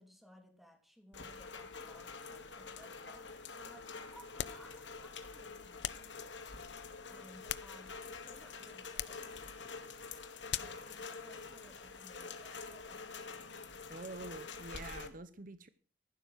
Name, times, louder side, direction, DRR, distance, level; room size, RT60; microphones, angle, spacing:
voice 1, 0.0-5.9 7.1-9.2 10.6-13.3, equal, ahead, 3.0 m, -60 dB
Rain, 1.1-15.1, left 4 dB, 85° left, 2.3 m, -47 dB
sound 1, 4.4-4.7 5.8-6.1 7.2-8.1 8.9-9.3 10.5-10.9, left 10 dB, 70° left, 0.7 m, -41 dB
voice 2, 13.9-15.7, right 2 dB, 50° right, 0.9 m, -47 dB
15.0 x 12.0 x 6.2 m
head